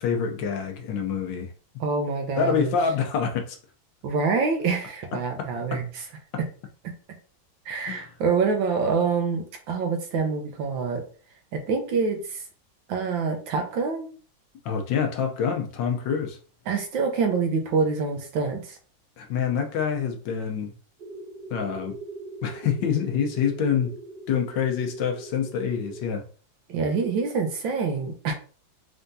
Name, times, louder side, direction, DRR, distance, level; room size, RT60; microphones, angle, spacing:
voice 1, 0.0-1.5 2.4-3.6 5.4-5.8 7.9-8.1 14.6-16.4 19.2-20.7 21.5-21.9 22.4-23.9 24.3-26.2, left 7 dB, 70° left, 1.4 m, -26 dB
voice 2, 1.8-2.7 4.0-5.8 7.7-11.0 11.5-12.4 12.9-14.1 16.7-18.8 26.7-28.3, right 5 dB, 75° right, 1.6 m, -26 dB
sound 1, 21.0-26.0, right 3 dB, 60° right, 2.2 m, -41 dB
4.5 x 3.5 x 2.7 m
omnidirectional pair, 2.2 m